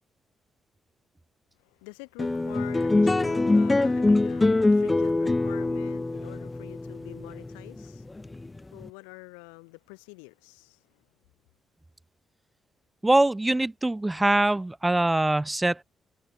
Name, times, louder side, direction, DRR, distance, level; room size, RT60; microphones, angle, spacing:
voice 1, 1.6-8.1 8.7-11.1, left 40 dB or more, 75° left, 6.3 m, -46 dB
sound 1, 2.2-8.8, left 2 dB, 20° left, 1.7 m, -24 dB
voice 2, 13.0-15.8, right 2 dB, 15° right, 3.3 m, -23 dB
figure-of-eight pair, 40°, 0 cm